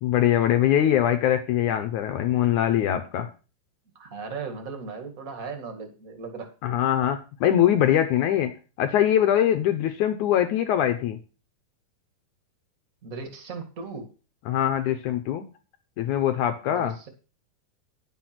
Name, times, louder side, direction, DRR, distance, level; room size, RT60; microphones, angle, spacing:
voice 1, 0.0-3.3 6.6-8.5 8.8-11.2 14.5-15.4 16.0-16.9, left 11 dB, 70° left, 7 dB, 1.9 m, -22 dB
voice 2, 3.9-6.5 13.0-14.1 16.7-17.1, right 4 dB, 35° right, 5 dB, 1.5 m, -37 dB
10.0 x 7.2 x 6.0 m, 0.33 s
omnidirectional pair, 4.2 m